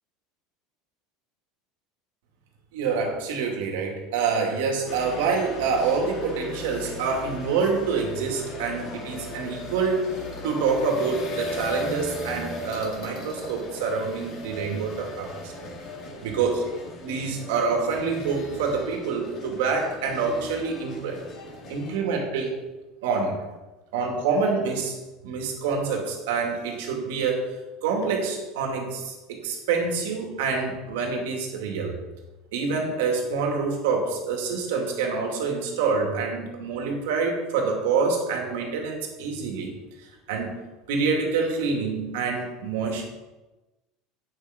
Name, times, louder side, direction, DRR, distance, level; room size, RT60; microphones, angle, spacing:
voice 1, 2.7-10.1 10.4-15.5 16.2-16.6 17.0-21.2 21.7-22.6 23.0-23.4 23.9-25.0 25.2-27.5 27.8-31.9 32.5-39.8 40.3-40.6 40.9-43.1, right 5 dB, 85° right, 1 dB, 2.4 m, -26 dB
sound 1, 4.9-22.0, left 1 dB, 40° left, 2.1 m, -37 dB
9.3 x 6.8 x 5.2 m, 1.1 s
supercardioid pair, 150°, 0 cm